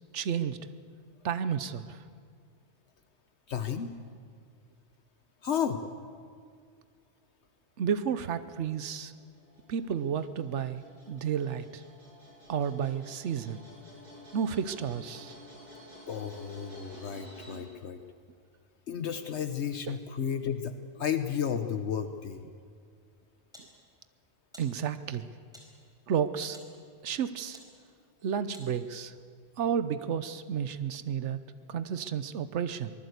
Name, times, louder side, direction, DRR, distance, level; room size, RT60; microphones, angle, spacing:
voice 1, 0.1-0.6 1.2-2.0 7.8-9.1 9.7-11.8 12.5-13.6 14.3-15.4 19.9-20.0 23.6-23.7 24.6-25.3 26.1-26.6 27.0-27.6 28.2-29.1 29.6-31.4 31.7-32.9, right 8 dB, 85° right, 12 dB, 1.1 m, -31 dB
voice 2, 3.5-3.9 5.4-5.8 16.1-18.0 18.9-22.4, left 8 dB, 75° left, 8 dB, 1.2 m, -33 dB
sound 1, 8.5-17.6, equal, 35° right, 7.8 m, -52 dB
sound 2, 22.9-29.2, equal, 5° right, 4.7 m, -58 dB
24.0 x 20.0 x 8.2 m, 2.1 s
omnidirectional pair, 1.2 m